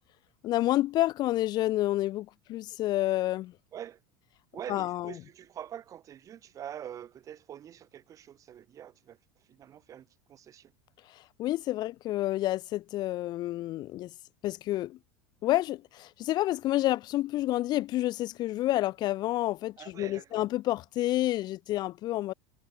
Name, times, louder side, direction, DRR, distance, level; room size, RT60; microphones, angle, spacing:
voice 1, 0.4-3.5 4.7-5.1 11.1-14.1 14.4-15.0 15.4-22.3, left 15 dB, 40° left, 1.1 m, -29 dB
voice 2, 4.5-10.7 19.8-20.4, right 10 dB, 30° right, 5.4 m, -45 dB
supercardioid pair, 145°, 11 cm